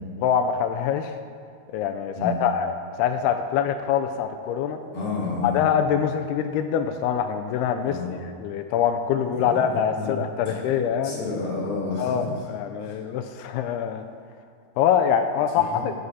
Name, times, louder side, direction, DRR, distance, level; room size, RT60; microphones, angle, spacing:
voice 1, 0.2-1.2 1.7-2.7 3.0-4.8 5.4-11.2 12.0-14.0 14.8-15.9, left 8 dB, 85° left, 7 dB, 2.3 m, -24 dB
voice 2, 4.9-5.6 7.9-8.1 9.3-10.1 10.5-10.6 11.0-12.2 12.9-13.0 15.5-15.8, left 3 dB, 55° left, -6 dB, 3.9 m, -30 dB
12.5 x 8.1 x 4.2 m, 2.2 s
omnidirectional pair, 5.0 m